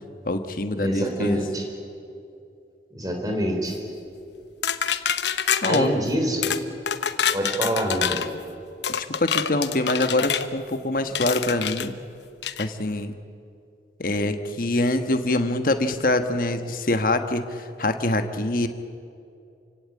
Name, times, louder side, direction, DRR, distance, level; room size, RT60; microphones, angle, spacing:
voice 1, 0.2-1.4 5.6-6.0 9.0-12.0 12.6-13.1 14.0-18.7, left 2 dB, 50° left, 8 dB, 1.3 m, -24 dB
voice 2, 0.8-1.6 2.9-3.8 5.6-6.6 7.3-8.3, equal, 20° right, 2 dB, 3.6 m, -26 dB
sound 1, 4.6-5.8 6.4-6.6 6.9-8.3 8.8-10.5 11.2-11.9 12.4-12.7, left 8 dB, 80° left, 1.0 m, -26 dB
28.0 x 17.0 x 8.6 m, 2.6 s
head